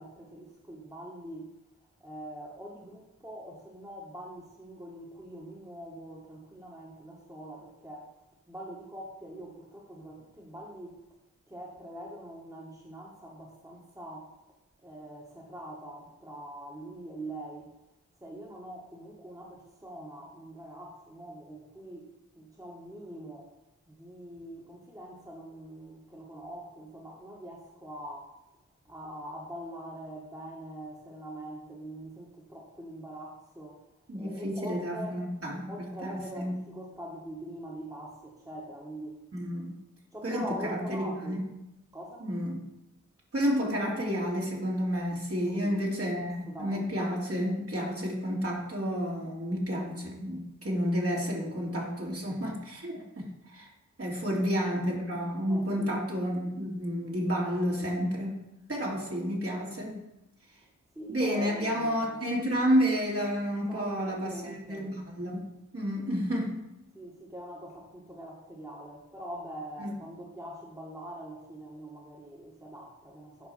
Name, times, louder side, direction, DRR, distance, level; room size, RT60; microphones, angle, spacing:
voice 1, 0.0-8.1 8.5-11.0 11.5-14.3 14.8-17.8 18.2-23.5 23.9-28.3 28.8-33.9 34.1-35.2 35.7-39.2 40.1-41.4 41.9-42.3 45.5-45.7 46.5-46.9 54.4-54.9 55.5-56.0 60.6-60.7 61.0-62.3 63.7-64.9 66.9-73.5, right 1 dB, 10° right, -3 dB, 1.8 m, -43 dB
voice 2, 34.1-35.7 36.0-36.5 39.3-39.7 40.2-41.4 42.2-42.6 43.3-53.7 54.0-58.4 58.7-60.0 61.1-65.4 65.7-66.6 69.8-69.9, equal, 50° right, -4 dB, 2.8 m, -30 dB
9.4 x 5.0 x 5.8 m, 0.92 s
wide cardioid pair, 70°, 30 cm